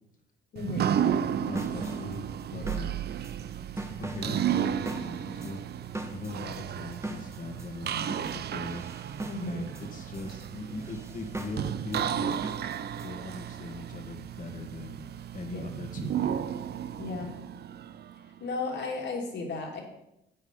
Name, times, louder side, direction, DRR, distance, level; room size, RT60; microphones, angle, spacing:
voice 1, 0.5-0.9 9.3-9.7 15.5-15.6 17.0-17.3 18.4-19.8, left 3 dB, 60° left, 1 dB, 2.8 m, -34 dB
sound 1, 0.6-18.4, right 9 dB, 55° right, 0.6 m, -33 dB
voice 2, 1.4-2.3 2.5-3.2 4.0-5.6 6.1-8.9 9.4-12.5 13.0-16.6 17.1-17.3, left 2 dB, 40° left, 3 dB, 1.9 m, -40 dB
sound 2, 1.5-13.1, right 1 dB, 15° right, 1.3 m, -42 dB
10.0 x 8.1 x 5.6 m, 0.84 s
cardioid pair, 90°, 20 cm